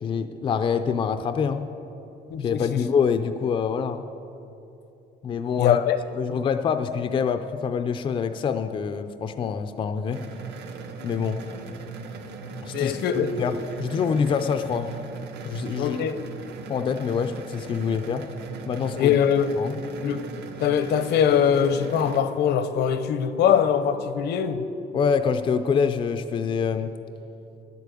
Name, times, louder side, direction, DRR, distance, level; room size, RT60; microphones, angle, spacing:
voice 1, 0.0-1.6 2.4-4.0 5.2-5.8 6.1-10.2 11.0-11.4 12.6-12.9 13.4-14.9 15.4-16.0 16.7-18.2 18.7-19.2 19.6-19.8 24.9-26.9, left 6 dB, 30° left, 9 dB, 0.4 m, -25 dB
voice 2, 2.3-2.8 5.6-6.0 12.7-13.3 15.8-16.2 19.0-19.6 20.0-24.7, left 8 dB, 70° left, 11 dB, 0.7 m, -22 dB
sound 1, 10.1-22.2, right 4 dB, 75° right, 1.1 m, -38 dB
11.0 x 8.2 x 8.3 m, 2.8 s
cardioid pair, 175°, 18 cm